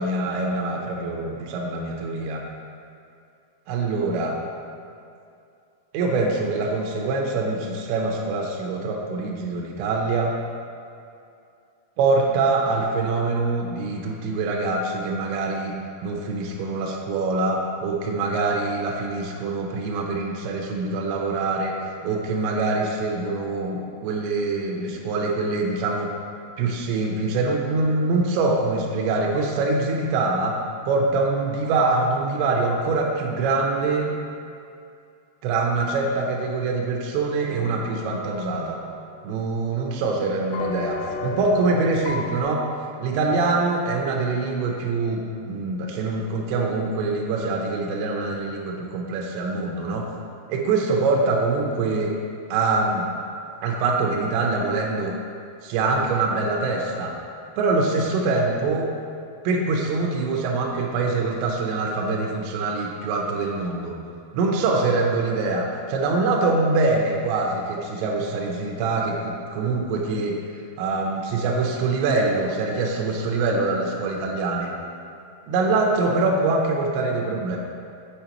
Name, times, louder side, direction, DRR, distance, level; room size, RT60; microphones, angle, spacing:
voice 1, 0.0-2.4 3.7-4.4 5.9-10.3 12.0-15.7 16.0-21.7 22.0-26.1 26.6-30.6 30.9-34.1 35.4-38.8 39.2-42.7 43.0-50.1 50.5-52.1 52.5-53.1 53.6-55.1 55.6-57.1 57.6-58.9 59.4-64.0 64.3-70.4 70.8-74.7 75.5-77.6, right 3 dB, 80° right, 0 dB, 2.8 m, -24 dB
sound 1, 37.4-39.5 40.5-42.4, left 3 dB, 90° left, 2.3 m, -33 dB
6.8 x 5.6 x 2.9 m, 2.5 s
omnidirectional pair, 5.4 m